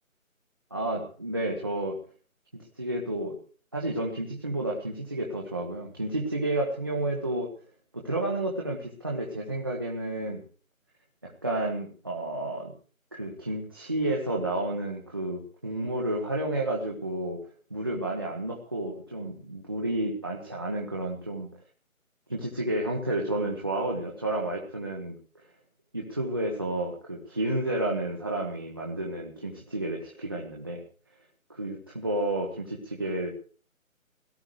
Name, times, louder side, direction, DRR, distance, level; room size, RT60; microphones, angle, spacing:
voice 1, 0.7-2.0 2.5-3.4 3.7-7.5 7.9-10.4 11.2-12.7 13.1-17.4 17.7-21.5 22.3-25.2 25.9-30.8 31.5-33.3, right 1 dB, 15° right, -3 dB, 1.2 m, -31 dB
17.5 x 13.5 x 4.8 m, 0.40 s
figure-of-eight pair, 175°, 41 cm